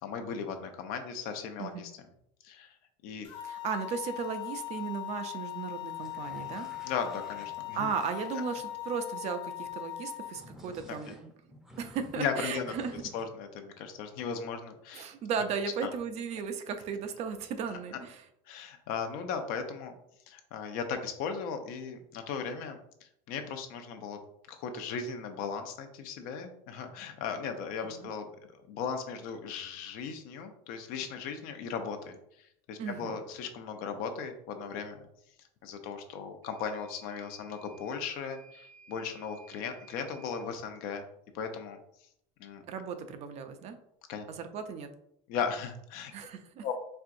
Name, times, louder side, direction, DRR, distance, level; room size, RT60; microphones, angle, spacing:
voice 1, 0.0-1.9 2.4-2.7 3.0-3.3 6.8-7.9 10.9-11.1 12.2-12.7 13.1-15.1 15.8-15.9 18.5-19.9 20.3-22.8 23.3-24.2 24.5-28.3 28.7-32.2 32.7-35.0 35.6-41.0 41.3-41.8 42.4-42.6 44.1-44.2 45.3-46.1 46.6-46.7, left 6 dB, 60° left, 6 dB, 0.7 m, -37 dB
sound 1, 3.2-10.4, left 16 dB, 85° left, 1.1 m, -40 dB
voice 2, 3.4-6.7 7.7-11.3 11.8-13.0 14.9-18.2 27.8-28.1 32.8-33.1 42.7-43.8 44.3-44.9 46.1-46.6, right 6 dB, 45° right, 8 dB, 0.5 m, -36 dB
sound 2, 6.0-8.7 10.3-13.2, equal, ahead, 0.7 m, -52 dB
Microwave oven / Alarm, 36.4-40.5, right 4 dB, 90° right, 1.1 m, -57 dB
4.4 x 3.6 x 2.5 m, 0.73 s
cardioid pair, 140°, 16 cm